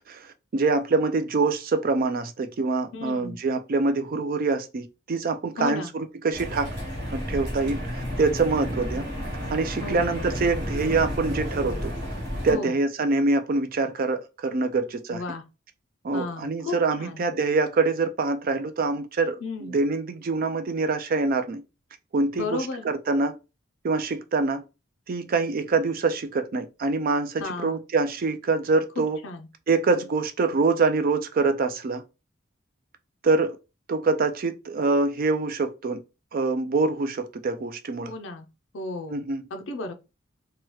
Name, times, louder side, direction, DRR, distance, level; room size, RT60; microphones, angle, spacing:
voice 1, 0.1-6.7 7.1-9.1 9.5-11.9 12.4-15.2 16.0-21.6 22.1-23.4 23.8-24.6 25.1-29.2 29.7-32.0 33.2-33.6 33.9-36.0 36.3-38.1 39.1-39.4, right 3 dB, 45° right, 0.4 m, -25 dB
voice 2, 2.9-3.4 5.6-5.9 9.8-10.1 12.5-12.8 15.1-15.4 16.1-17.2 19.4-19.7 22.3-22.9 27.4-27.7 29.0-29.5 38.0-38.5 38.7-39.9, left 3 dB, 70° left, 0.4 m, -34 dB
sound 1, 6.3-12.6, equal, 65° right, 1.3 m, -31 dB
3.0 x 2.3 x 3.0 m
head